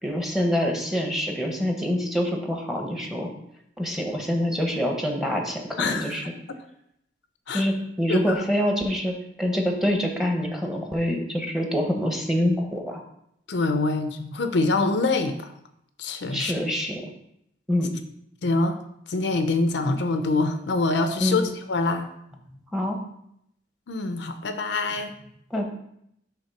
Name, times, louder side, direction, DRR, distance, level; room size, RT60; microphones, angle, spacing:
voice 1, 0.0-3.3 3.8-6.3 7.5-13.0 16.3-17.0 17.7-17.9 21.2-21.4 22.5-23.0 25.5-25.7, equal, ahead, 2 dB, 0.9 m, -26 dB
voice 2, 5.8-6.4 7.5-7.7 8.1-8.4 13.5-15.5 16.0-16.5 18.4-18.8 19.1-21.4 21.7-22.1 23.9-25.1, left 3 dB, 65° left, 8 dB, 0.5 m, -25 dB
5.7 x 3.6 x 5.7 m, 0.76 s
head